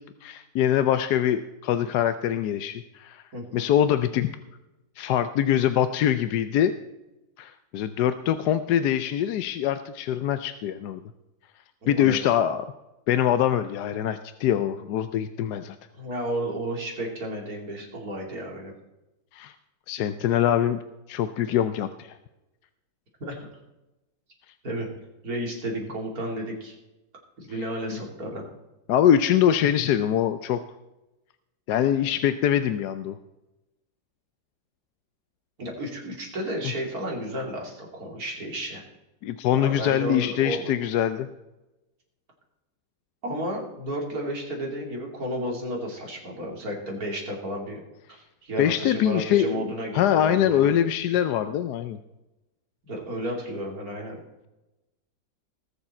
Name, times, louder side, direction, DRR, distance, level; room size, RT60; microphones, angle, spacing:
voice 1, 0.0-3.2 3.5-4.3 5.0-6.7 7.4-11.0 11.9-12.7 13.1-15.8 19.3-19.5 19.9-20.8 21.1-22.1 27.9-28.0 28.9-30.6 31.7-33.2 39.2-41.3 48.6-52.0, left 10 dB, 80° left, 11 dB, 1.2 m, -23 dB
voice 2, 3.3-3.6 11.8-12.2 15.9-18.7 23.2-23.5 24.6-24.9 25.2-26.7 27.5-28.5 35.6-38.8 39.5-40.7 43.2-47.8 48.1-50.7 52.8-54.2, right 1 dB, 60° right, 0 dB, 3.3 m, -32 dB
19.5 x 7.2 x 4.3 m, 0.99 s
omnidirectional pair, 1.7 m